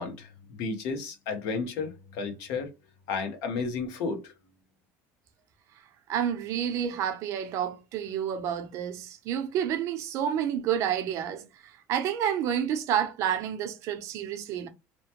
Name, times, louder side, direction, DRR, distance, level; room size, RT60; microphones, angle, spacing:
voice 1, 0.0-2.7 3.1-4.3, left 4 dB, 75° left, 0.9 m, -33 dB
voice 2, 6.1-14.7, right 9 dB, 55° right, 0.6 m, -29 dB
2.9 x 2.1 x 2.8 m
cardioid pair, 140°, 6 cm